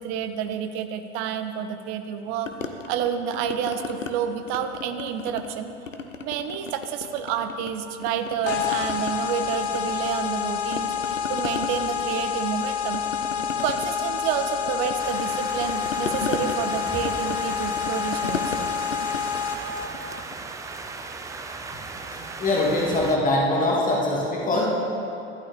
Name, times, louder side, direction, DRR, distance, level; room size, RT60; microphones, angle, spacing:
voice 1, 0.0-2.5 2.9-5.7 6.2-13.0 13.5-18.7, right 8 dB, 40° right, 9 dB, 0.7 m, -29 dB
sound 1, 2.5-4.1 4.5-5.6 5.9-7.7 8.0-10.4 10.7-20.5, left 4 dB, 85° left, 0.7 m, -35 dB
sound 2, 8.5-19.9, left 7 dB, 60° left, 1.0 m, -28 dB
sound 3, 15.0-23.2, right 3 dB, 10° right, 0.4 m, -37 dB
voice 2, 22.4-24.7, left 2 dB, 20° left, -4 dB, 2.1 m, -22 dB
12.0 x 11.5 x 3.4 m, 2.8 s
figure-of-eight pair, 80°, 37 cm